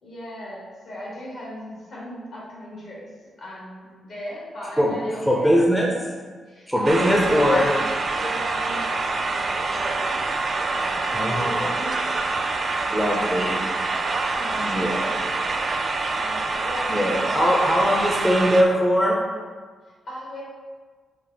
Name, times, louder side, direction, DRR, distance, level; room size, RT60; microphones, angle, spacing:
voice 1, 0.0-5.6 6.4-7.9 8.1-10.3 10.7-11.9 12.8-13.4 14.3-15.7 16.1-18.2 19.8-20.4, left 1 dB, 70° left, -5 dB, 1.4 m, -38 dB
voice 2, 5.3-5.9 6.7-7.7 11.1-11.7 12.9-13.6 14.6-15.2 16.9-19.2, equal, 5° left, -2 dB, 0.6 m, -21 dB
sound 1, 6.8-18.6, right 3 dB, 50° right, 0.4 m, -26 dB
5.0 x 2.1 x 3.3 m, 1.5 s
cardioid pair, 65°, 0 cm